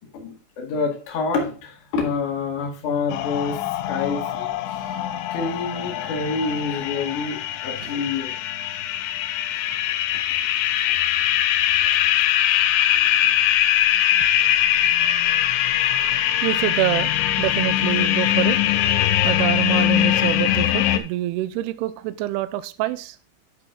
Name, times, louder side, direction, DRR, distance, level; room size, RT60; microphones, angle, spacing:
voice 1, 0.1-3.6 3.9-4.6 5.3-8.4 11.8-13.4, left 4 dB, 55° left, -1 dB, 2.9 m, -28 dB
sound 1, 3.1-21.0, left 12 dB, 90° left, 3.0 m, -22 dB
voice 2, 16.4-17.1 17.4-18.6 19.2-23.2, right 16 dB, 85° right, 12 dB, 2.4 m, -26 dB
9.8 x 6.2 x 3.7 m, 0.36 s
omnidirectional pair, 5.2 m